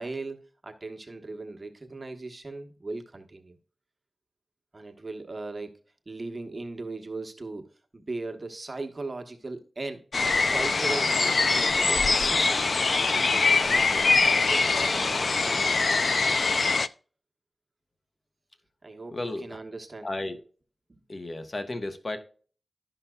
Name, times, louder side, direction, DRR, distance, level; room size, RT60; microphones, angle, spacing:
voice 1, 0.0-3.6 4.7-5.8 6.1-10.0 10.5-16.5 18.8-20.1 20.9-21.0, right 3 dB, 35° right, 0.9 m, -39 dB
sound 1, 10.1-16.9, left 4 dB, 60° left, 0.3 m, -23 dB
voice 2, 19.1-19.6 20.0-20.4 21.1-22.2, left 2 dB, 45° left, 1.1 m, -33 dB
12.0 x 5.8 x 2.2 m
wide cardioid pair, 80°, 0 cm